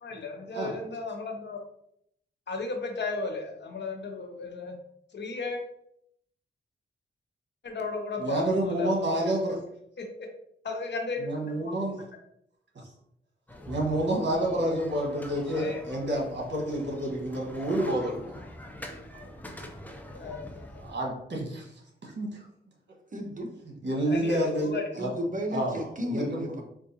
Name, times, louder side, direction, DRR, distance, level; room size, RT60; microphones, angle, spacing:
voice 1, 0.0-1.6 2.5-4.7 5.1-5.6 7.6-9.1 10.0-10.3 10.6-11.9 15.5-15.8 20.1-20.6 24.1-24.8, left 3 dB, 60° left, 3 dB, 0.8 m, -35 dB
voice 2, 8.2-9.6 11.2-12.0 13.7-18.3 20.8-21.7 22.0-22.4 23.8-25.1 25.5-26.5, right 1 dB, 60° right, -1 dB, 1.3 m, -29 dB
sound 1, 13.5-21.0, left 1 dB, 10° left, 0.5 m, -44 dB
voice 3, 23.1-23.5 25.0-26.6, equal, 40° right, 3 dB, 0.8 m, -33 dB
4.6 x 2.4 x 2.7 m, 0.72 s
cardioid pair, 65°, 21 cm